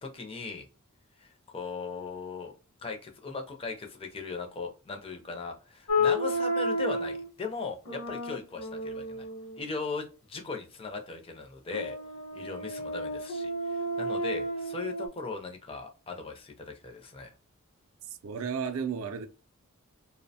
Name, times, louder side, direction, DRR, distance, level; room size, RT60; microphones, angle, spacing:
voice 1, 0.0-0.7 1.2-2.5 2.8-9.3 9.6-12.0 12.3-17.3, left 4 dB, 25° left, 0.4 m, -38 dB
sound 1, 5.9-7.3 7.9-9.6 11.7-15.1, left 1 dB, 65° left, 0.8 m, -31 dB
voice 2, 18.2-19.3, right 6 dB, 70° right, 0.4 m, -33 dB
2.7 x 2.1 x 2.6 m
head